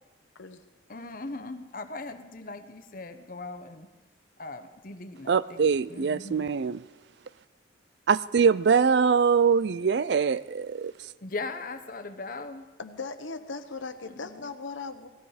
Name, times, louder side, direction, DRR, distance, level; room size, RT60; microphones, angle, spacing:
voice 1, 0.9-3.9 4.4-6.5 11.2-12.6 14.1-14.5, left 3 dB, 45° left, 10 dB, 0.9 m, -39 dB
voice 2, 5.3-6.8 8.1-10.9, right 6 dB, 60° right, 18 dB, 0.4 m, -23 dB
voice 3, 12.8-15.1, left 4 dB, 85° left, 9 dB, 1.1 m, -38 dB
18.5 x 14.5 x 5.0 m, 1.2 s
head